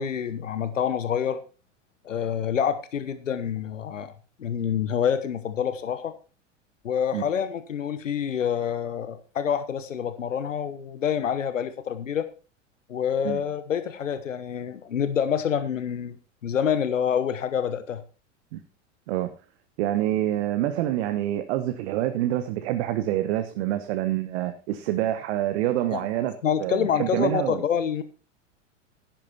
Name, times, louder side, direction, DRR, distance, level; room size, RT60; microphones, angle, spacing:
voice 1, 0.0-1.4 2.0-4.1 4.4-6.1 6.8-12.3 12.9-16.2 16.4-18.0 25.9-26.0 26.4-28.0, left 8 dB, 85° left, 12 dB, 1.2 m, -27 dB
voice 2, 19.8-27.6, right 13 dB, 60° right, 8 dB, 1.4 m, -27 dB
10.5 x 10.5 x 4.3 m, 0.34 s
hypercardioid pair, 95°, 37 cm